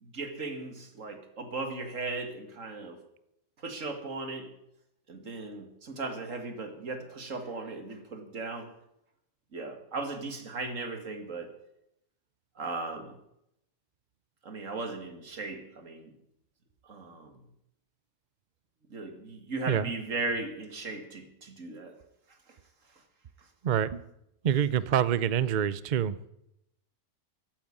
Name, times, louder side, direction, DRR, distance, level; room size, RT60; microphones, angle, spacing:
voice 1, 0.0-3.0 3.6-4.5 5.1-8.7 9.5-11.5 12.6-13.1 14.4-16.1 16.8-17.3 18.9-22.0, right 3 dB, 85° right, 7 dB, 2.5 m, -37 dB
voice 2, 23.6-24.0 24.4-26.3, right 9 dB, 50° right, 17 dB, 0.6 m, -26 dB
15.0 x 9.1 x 9.9 m, 0.81 s
omnidirectional pair, 1.3 m